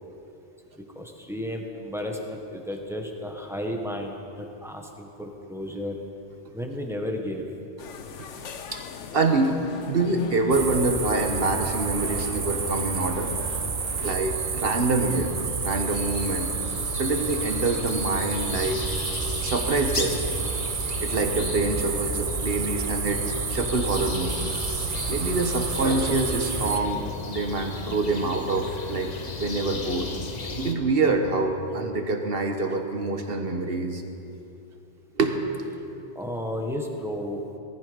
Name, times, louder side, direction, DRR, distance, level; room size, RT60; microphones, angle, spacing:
voice 1, 0.9-6.0 6.5-7.4 36.1-37.4, left 1 dB, ahead, 1 dB, 1.5 m, -33 dB
sound 1, 7.8-14.2, left 6 dB, 80° left, 1.2 m, -41 dB
voice 2, 8.0-8.4 8.7-8.8 9.1-13.3 14.0-15.3 15.6-16.5 16.9-18.8 19.4-20.2 21.0-24.4 25.1-30.3 30.6-34.0 35.2-35.4, right 3 dB, 55° right, 5 dB, 1.5 m, -26 dB
sound 2, 10.5-26.8, right 5 dB, 35° right, 0.7 m, -30 dB
sound 3, 14.0-30.8, left 3 dB, 35° left, 1.1 m, -36 dB
19.5 x 13.0 x 5.3 m, 2.7 s
omnidirectional pair, 1.2 m